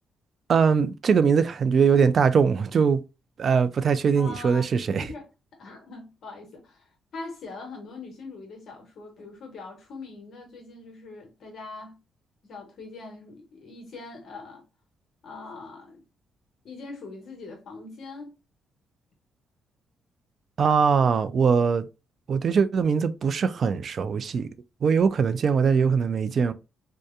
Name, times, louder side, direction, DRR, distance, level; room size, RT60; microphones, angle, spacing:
voice 1, 0.5-3.0 3.4-5.1 20.6-21.8 22.3-24.5 24.8-26.5, right 6 dB, 50° right, 0.3 m, -21 dB
voice 2, 4.2-4.7 5.0-5.3 5.6-12.0 12.4-14.6 15.2-16.0 16.6-18.4, left 3 dB, 60° left, 1.1 m, -42 dB
2.7 x 2.2 x 2.3 m
cardioid pair, 90°, 0 cm